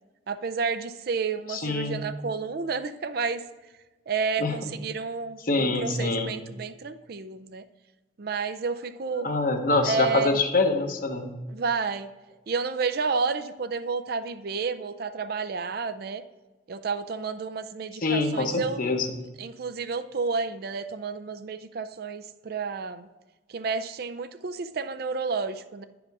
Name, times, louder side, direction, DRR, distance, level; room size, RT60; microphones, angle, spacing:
voice 1, 0.3-3.4 4.1-7.6 8.2-9.3 9.8-10.4 11.5-12.1 12.5-16.2 16.7-18.8 19.4-23.1 23.5-25.8, right 4 dB, 55° right, 11 dB, 0.4 m, -30 dB
voice 2, 1.5-2.0 4.4-4.5 5.5-6.4 9.2-11.3 18.0-19.1, left 3 dB, 50° left, 5 dB, 0.9 m, -25 dB
10.0 x 5.0 x 4.7 m, 1.2 s
head